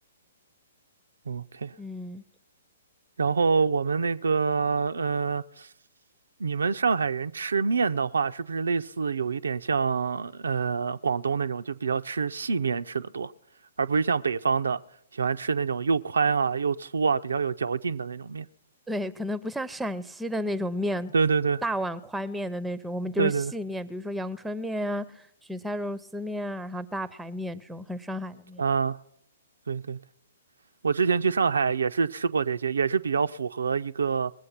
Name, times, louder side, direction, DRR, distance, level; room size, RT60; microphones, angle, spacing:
voice 1, 1.3-1.7 3.2-5.7 6.4-13.3 13.8-14.8 15.1-18.5 21.1-21.6 23.2-23.5 28.6-29.0 29.7-30.0 30.8-34.3, right 5 dB, 70° right, 0.4 m, -26 dB
voice 2, 1.8-2.2 18.9-21.1 21.6-28.6, equal, 5° right, 0.6 m, -32 dB
20.5 x 7.7 x 5.8 m
figure-of-eight pair, 115°, 0 cm